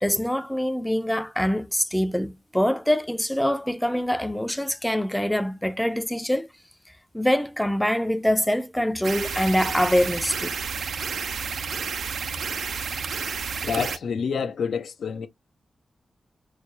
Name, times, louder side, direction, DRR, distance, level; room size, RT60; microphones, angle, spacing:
voice 1, 0.0-6.5 7.1-10.5, equal, 5° left, 0.4 m, -24 dB
sound 1, 9.0-14.0, right 6 dB, 85° right, 0.5 m, -30 dB
voice 2, 13.6-15.3, left 6 dB, 85° left, 0.6 m, -28 dB
4.6 x 2.2 x 2.8 m
wide cardioid pair, 110°, 0 cm